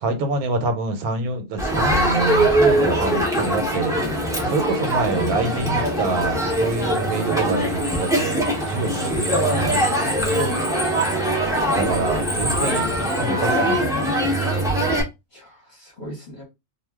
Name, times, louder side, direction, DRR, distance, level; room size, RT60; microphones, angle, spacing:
voice 1, 0.0-3.9 4.4-9.8 11.8-14.4, right 3 dB, 80° right, 1.1 m, -26 dB
Crowd, 1.6-15.0, right 1 dB, 5° right, 0.5 m, -22 dB
voice 2, 10.4-11.0 15.3-16.4, equal, 35° left, 0.9 m, -34 dB
2.4 x 2.3 x 3.4 m
omnidirectional pair, 1.6 m